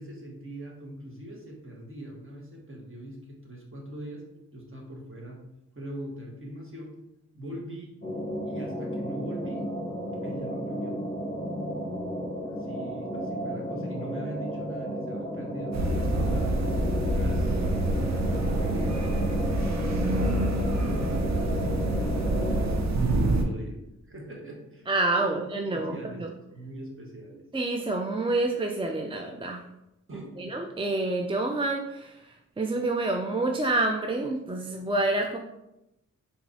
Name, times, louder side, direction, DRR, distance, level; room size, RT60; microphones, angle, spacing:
voice 1, 0.0-4.2 4.5-5.4 5.7-6.9 7.3-8.0 8.5-9.7 10.2-11.0 12.5-17.5 17.8-19.0 19.5-23.8 24.0-24.9 25.2-25.4 25.7-26.2 26.5-27.4 30.1-30.5, right 1 dB, 40° right, -1 dB, 1.4 m, -41 dB
sound 1, 8.0-22.8, equal, 25° left, 0.9 m, -33 dB
sound 2, 15.7-23.4, right 1 dB, 60° right, 0.7 m, -26 dB
voice 2, 24.9-26.3 27.5-29.7 30.1-35.4, right 2 dB, 15° right, 2 dB, 0.4 m, -28 dB
4.6 x 3.4 x 2.7 m, 0.88 s
cardioid pair, 45°, 31 cm